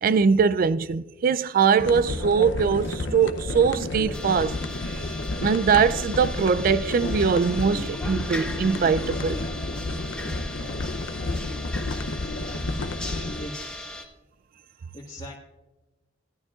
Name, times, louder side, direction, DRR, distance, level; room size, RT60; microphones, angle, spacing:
voice 1, 0.0-4.5 4.9-5.0 5.4-9.4, right 6 dB, 50° right, 0.3 m, -22 dB
sound 1, 1.8-13.5, left 2 dB, 75° left, 0.6 m, -31 dB
sound 2, 2.1-2.4 2.8-2.9 3.5-3.8 4.1-4.7 5.0-5.8 6.0-6.1 6.4-7.2 7.4-7.5 7.8-8.0 8.3-8.6 9.1-9.4 9.7-10.0 10.3-11.1 11.3-11.4 12.0-12.3 12.6-12.8 13.1-13.2, equal, 15° right, 1.8 m, -41 dB
sound 3, 4.1-14.0, left 1 dB, 5° left, 1.0 m, -38 dB
voice 2, 13.2-14.0 14.9-15.4, left 1 dB, 30° left, 1.7 m, -41 dB
16.0 x 11.5 x 2.4 m
head